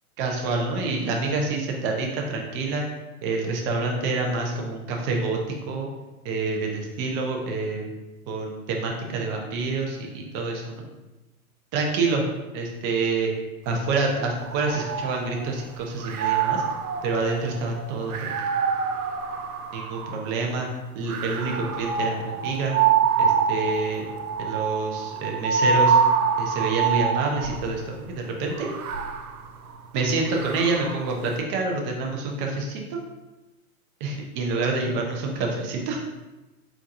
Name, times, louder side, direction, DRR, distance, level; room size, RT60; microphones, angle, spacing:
voice 1, 0.2-2.8 3.2-5.4 5.7-5.9 6.2-7.9 8.3-10.9 11.7-12.2 12.5-13.3 13.7-16.6 17.0-18.3 19.7-20.7 20.9-22.8 23.2-24.0 24.4-26.0 26.4-28.7 29.9-33.0 34.0-36.0, right 3 dB, 25° right, 1 dB, 0.7 m, -27 dB
sound 1, 14.4-15.6 16.0-20.4 21.1-27.8 28.5-31.1, right 6 dB, 75° right, 0.6 m, -26 dB
4.5 x 3.8 x 2.6 m, 1.1 s
hypercardioid pair, 125°, 44 cm